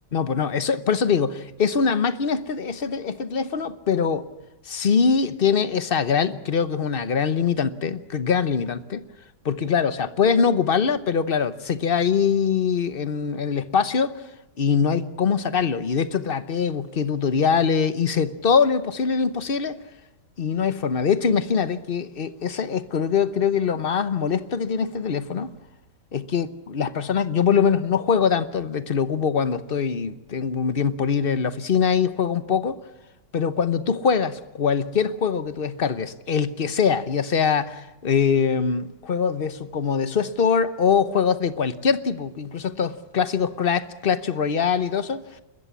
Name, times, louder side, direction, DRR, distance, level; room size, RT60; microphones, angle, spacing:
voice 1, 0.1-4.3 4.7-9.0 9.4-14.1 14.6-19.7 20.4-25.5 26.1-32.8 33.3-45.4, left 6 dB, 40° left, 0.9 m, -23 dB
29.5 x 13.5 x 8.4 m
omnidirectional pair, 1.9 m